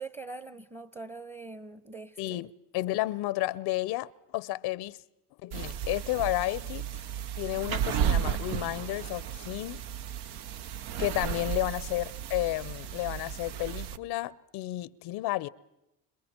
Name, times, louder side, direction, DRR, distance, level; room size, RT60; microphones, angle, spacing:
voice 1, 0.0-2.5 11.2-11.4, right 3 dB, 15° right, 1.0 m, -43 dB
voice 2, 2.2-5.0 5.4-6.9 7.4-9.8 11.0-15.5, left 17 dB, 65° left, 0.7 m, -32 dB
sound 1, 5.5-14.0, right 9 dB, 65° right, 1.0 m, -34 dB
30.0 x 27.0 x 4.4 m
supercardioid pair, 85°, 42 cm